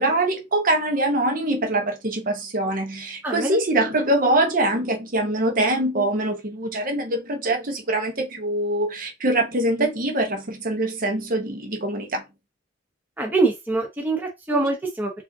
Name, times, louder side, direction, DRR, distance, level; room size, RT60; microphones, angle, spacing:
voice 1, 0.0-12.2 14.5-14.7, right 1 dB, 50° right, 0.9 m, -23 dB
voice 2, 3.2-3.6 7.4-7.5 13.2-15.1, right 3 dB, 10° right, 0.7 m, -24 dB
4.8 x 2.7 x 2.7 m
head